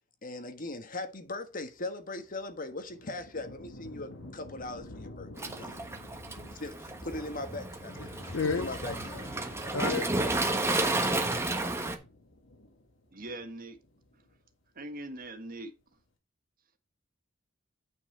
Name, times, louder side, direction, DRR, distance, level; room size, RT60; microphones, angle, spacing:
voice 1, 0.2-5.8 6.5-8.0 8.4-9.3, left 2 dB, 45° left, 1.4 m, -39 dB
sound 1, 1.7-14.5 14.8-15.5, left 1 dB, 90° left, 2.1 m, -51 dB
Waves surf, 5.4-12.0, right 2 dB, 15° right, 1.2 m, -32 dB
voice 2, 8.0-10.0, left 5 dB, 70° left, 0.7 m, -34 dB
voice 3, 13.1-13.8 14.1-14.2 14.7-15.7, right 2 dB, 45° right, 1.6 m, -41 dB
9.3 x 6.0 x 4.4 m
head